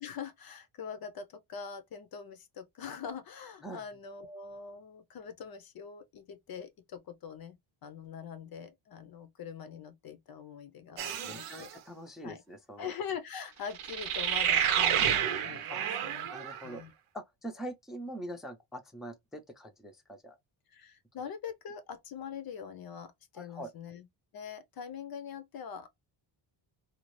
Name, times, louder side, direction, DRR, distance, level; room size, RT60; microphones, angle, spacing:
voice 1, 0.0-7.6 7.8-11.7 12.2-12.4 12.8-16.3 16.6-16.9 20.7-24.1 24.3-25.9, left 7 dB, 50° left, 0.6 m, -43 dB
voice 2, 10.9-12.9 15.7-15.8 16.3-16.8 17.1-20.4 23.4-23.7, right 1 dB, ahead, 0.5 m, -43 dB
sound 1, 11.0-11.7 13.7-16.7, right 9 dB, 85° right, 0.8 m, -30 dB
2.5 x 2.3 x 3.1 m
cardioid pair, 120°, 49 cm